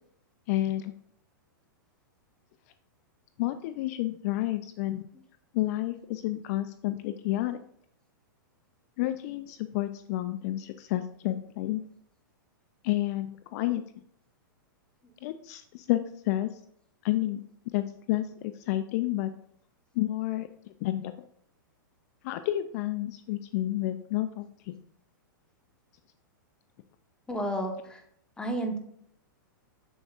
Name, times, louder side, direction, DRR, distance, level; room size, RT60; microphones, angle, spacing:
voice 1, 0.5-0.9 3.4-5.1 5.5-7.6 9.0-11.8 12.8-13.8 15.2-16.6 17.0-17.4 17.7-19.3 19.9-21.1 22.2-24.8, left 15 dB, 50° left, 11 dB, 0.4 m, -30 dB
voice 2, 27.3-28.0 28.4-28.8, right 1 dB, 5° left, 3 dB, 1.2 m, -31 dB
7.1 x 6.8 x 2.5 m, 0.67 s
hypercardioid pair, 120°, 11 cm